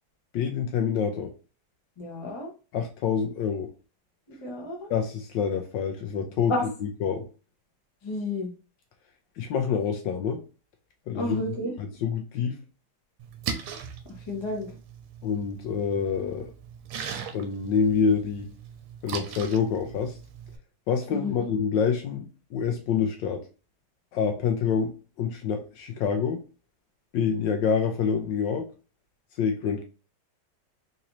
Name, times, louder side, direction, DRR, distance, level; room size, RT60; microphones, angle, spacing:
voice 1, 0.3-1.3 2.7-3.7 4.9-6.5 7.0-7.2 9.4-10.4 11.1-11.4 11.8-12.5 15.2-16.5 17.3-18.5 19.0-20.2 20.9-23.4 24.1-24.9 25.2-26.4 27.1-28.7 29.4-29.8, left 6 dB, 75° left, 5 dB, 1.1 m, -26 dB
voice 2, 2.0-2.5 4.4-4.9 6.5-6.7 8.0-8.5 11.1-11.7 14.1-14.7 21.1-21.5, left 2 dB, 35° left, -1 dB, 0.4 m, -31 dB
Splash splatter, 13.2-20.6, right 7 dB, 85° right, 1.5 m, -39 dB
3.9 x 2.7 x 3.0 m, 0.34 s
omnidirectional pair, 2.3 m